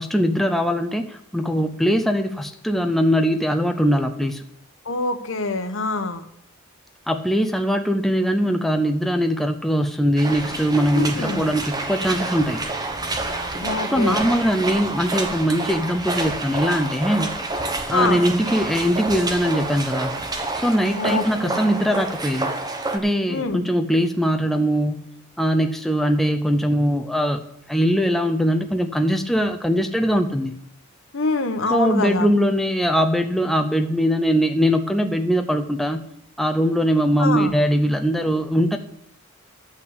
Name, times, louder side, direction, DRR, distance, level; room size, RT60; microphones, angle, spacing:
voice 1, 0.0-4.4 7.1-12.6 13.9-17.3 17.9-20.1 20.5-22.5 22.9-25.1 25.4-30.5 31.7-36.0 36.4-38.8, equal, ahead, 4 dB, 0.6 m, -21 dB
voice 2, 4.8-6.2 10.9-11.4 13.6-14.2 17.9-18.2 21.0-21.6 23.3-23.6 31.1-32.3 37.2-37.5, left 3 dB, 65° left, 9 dB, 1.0 m, -25 dB
sound 1, 10.2-23.0, right 2 dB, 20° right, 1.1 m, -28 dB
12.5 x 5.7 x 8.2 m, 0.74 s
head